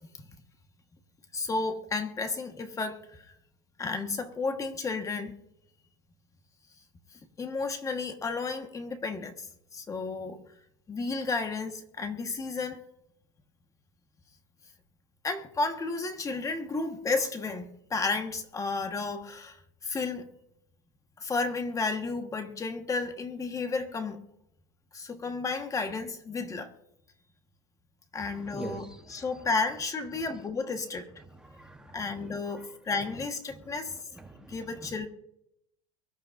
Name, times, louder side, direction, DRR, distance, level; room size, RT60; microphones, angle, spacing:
voice 1, 1.3-3.3 3.8-5.3 7.4-9.5 9.7-10.4 10.9-12.8 15.2-19.6 19.8-20.3 21.2-24.2 24.9-26.7 28.1-28.8 29.1-31.1 31.9-34.0 34.5-35.1, left 4 dB, 20° left, 1.5 m, -32 dB
voice 2, 28.2-29.5 30.1-30.2 31.3-33.1 33.5-33.8 34.1-35.1, right 1 dB, 5° right, 1.2 m, -46 dB
23.5 x 12.5 x 2.6 m
supercardioid pair, 130°, 18 cm